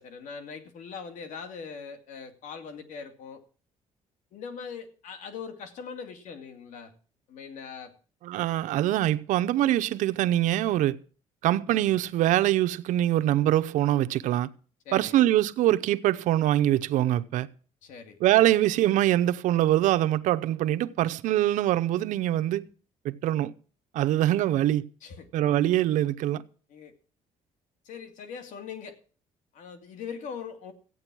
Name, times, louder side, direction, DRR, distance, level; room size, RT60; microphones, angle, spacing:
voice 1, 0.0-3.4 4.3-6.9 7.3-7.9 11.7-11.9 14.9-15.2 17.8-18.2 25.0-25.3 26.7-26.9 27.8-28.9 29.5-30.7, left 6 dB, 75° left, 2.3 m, -41 dB
voice 2, 8.2-11.0 11.4-14.5 14.9-17.5 18.2-22.6 23.0-23.5 23.9-24.8 25.3-26.4, right 13 dB, 80° right, 0.7 m, -24 dB
14.5 x 9.0 x 6.1 m
cardioid pair, 130°, 13 cm